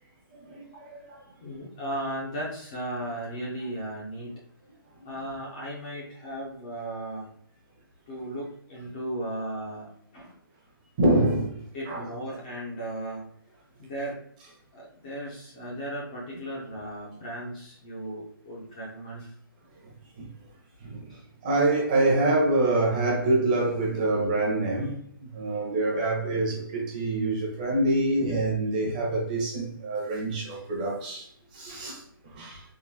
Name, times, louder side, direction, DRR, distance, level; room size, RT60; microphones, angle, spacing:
voice 1, 0.4-1.2 5.0-5.1 11.0-11.6 11.9-12.1 20.2-20.3 20.8-21.1 21.4-32.6, right 2 dB, 20° right, 0.8 m, -26 dB
voice 2, 1.4-4.4 5.0-7.3 8.1-10.3 11.7-13.3 13.8-14.3 14.7-19.3 21.1-21.2, right 1 dB, 20° left, 0.5 m, -36 dB
3.7 x 2.6 x 2.7 m
hypercardioid pair, 170°, 12 cm